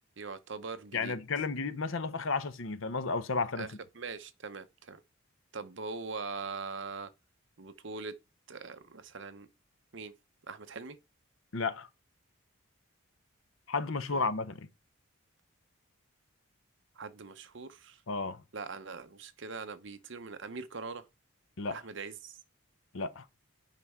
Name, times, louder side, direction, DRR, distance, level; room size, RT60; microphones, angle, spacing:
voice 1, 0.2-1.2 3.6-3.7 3.9-5.0 5.5-7.1 7.6-8.1 8.5-9.5 9.9-10.1 10.5-11.0 14.1-14.3 17.0-18.0 18.5-21.1 21.7-22.4, right 4 dB, 55° right, 0.8 m, -42 dB
voice 2, 0.9-3.7 11.5-11.9 13.7-14.7 18.1-18.4 21.6-21.8 22.9-23.3, left 4 dB, 65° left, 0.8 m, -33 dB
9.8 x 5.3 x 3.6 m
head